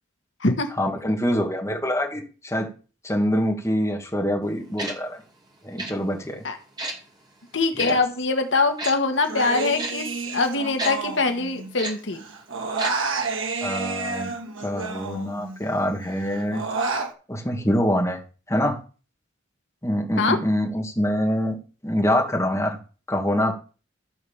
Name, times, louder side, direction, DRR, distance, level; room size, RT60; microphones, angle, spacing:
voice 1, 0.8-2.7 3.0-5.2 5.6-6.4 7.8-8.0 13.6-14.3 14.6-16.6 17.3-18.2 18.5-18.8 19.8-21.6 21.8-22.7 23.1-23.5, equal, 15° left, 1 dB, 2.1 m, -25 dB
Tick-tock, 4.8-4.9 5.8-5.9 6.8-7.0 7.8-7.9 8.8-8.9 9.8-9.9 10.8-10.9 11.8-11.9 12.8-12.9 13.2-13.3, right 2 dB, 20° right, 2.5 m, -30 dB
voice 2, 7.5-12.2 20.2-20.4, left 3 dB, 65° left, 6 dB, 1.6 m, -23 dB
Human voice, 9.2-11.9 12.1-15.6 16.0-17.1, right 4 dB, 75° right, 2.0 m, -30 dB
14.0 x 4.9 x 7.3 m, 0.36 s
head